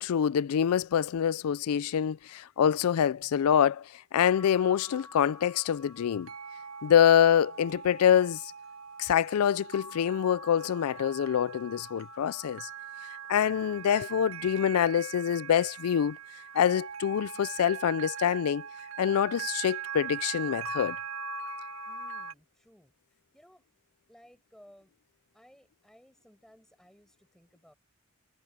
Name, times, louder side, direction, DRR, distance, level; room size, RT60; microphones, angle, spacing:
voice 1, 0.0-6.3 6.8-8.5 9.0-12.7 13.1-16.2 16.5-18.7 19.0-21.0, left 9 dB, 80° left, 0.4 m, -26 dB
sound 1, 4.2-22.3, right 6 dB, 65° right, 2.1 m, -41 dB
voice 2, 21.9-23.7 24.1-24.9 25.3-27.7, equal, ahead, 7.4 m, -59 dB
head